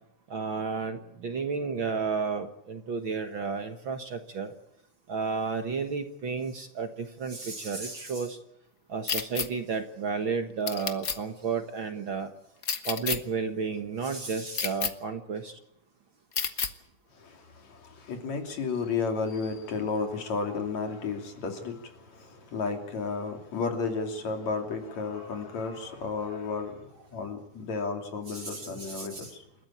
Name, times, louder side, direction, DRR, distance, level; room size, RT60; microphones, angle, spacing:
voice 1, 0.3-4.5 5.1-8.4 8.9-12.3 12.9-15.6 28.3-29.3, right 5 dB, 50° right, 1.9 m, -32 dB
sound 1, 9.1-9.5 10.7-11.2 12.6-13.2 14.5-14.9 16.3-16.7, left 6 dB, 45° left, 1.2 m, -29 dB
voice 2, 17.1-29.5, left 4 dB, 65° left, 4.2 m, -33 dB
29.0 x 14.0 x 8.7 m
omnidirectional pair, 3.4 m